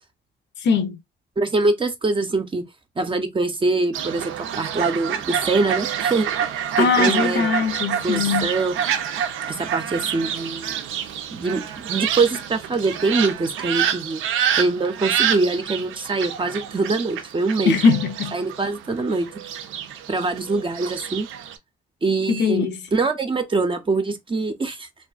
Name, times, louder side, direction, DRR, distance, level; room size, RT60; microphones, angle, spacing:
voice 1, 0.6-1.0 6.8-8.5 17.7-18.3 22.3-22.8, left 5 dB, 65° left, 0.6 m, -20 dB
voice 2, 1.4-2.6 3.0-6.3 6.8-7.6 8.0-8.9 9.4-10.8 11.3-14.2 14.5-17.8 18.3-19.3 20.1-21.3 22.0-24.9, right 3 dB, 25° right, 0.5 m, -24 dB
Fowl, 3.9-21.6, right 9 dB, 85° right, 0.5 m, -27 dB
2.5 x 2.4 x 2.3 m
cardioid pair, 90°, 20 cm